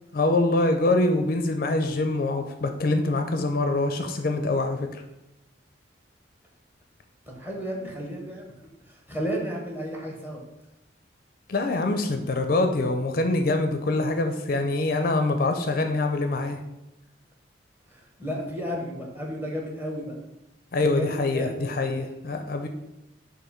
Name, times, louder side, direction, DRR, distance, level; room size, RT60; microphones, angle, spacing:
voice 1, 0.1-5.0 11.5-16.6 20.7-22.7, left 2 dB, 50° left, 6 dB, 0.4 m, -24 dB
voice 2, 7.3-8.5 8.8-10.4 17.9-20.2 20.9-21.5, equal, 10° right, -1 dB, 1.1 m, -33 dB
6.4 x 2.6 x 5.6 m, 0.91 s
head